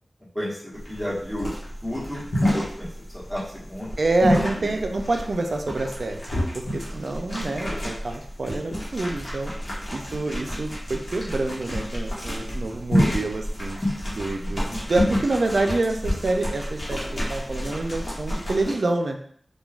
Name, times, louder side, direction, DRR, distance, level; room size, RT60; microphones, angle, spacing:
voice 1, 0.3-1.5 1.8-2.9 3.3-4.0 4.6-4.7 6.7-7.0 9.8-9.9 10.3-10.6 14.3-14.5, equal, 5° left, -7 dB, 1.1 m, -33 dB
sound 1, 0.8-18.7, equal, 65° left, 1.0 m, -29 dB
voice 2, 4.0-6.2 6.5-9.5 9.9-13.8 14.1-19.2, right 2 dB, 70° right, 4 dB, 0.3 m, -27 dB
3.1 x 2.2 x 2.3 m, 0.62 s
wide cardioid pair, 50°, 0 cm